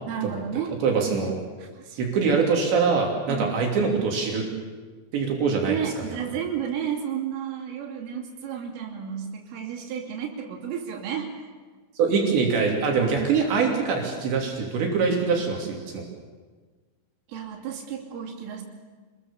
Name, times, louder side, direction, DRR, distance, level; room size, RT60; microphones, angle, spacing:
voice 1, 0.1-0.7 1.6-2.1 3.3-3.6 5.7-11.3 17.3-18.6, right 8 dB, 85° right, 0 dB, 5.3 m, -32 dB
voice 2, 0.8-1.4 2.0-4.4 5.1-6.2 12.0-16.1, right 5 dB, 65° right, 0 dB, 5.1 m, -24 dB
27.5 x 21.5 x 7.1 m, 1.4 s
omnidirectional pair, 5.7 m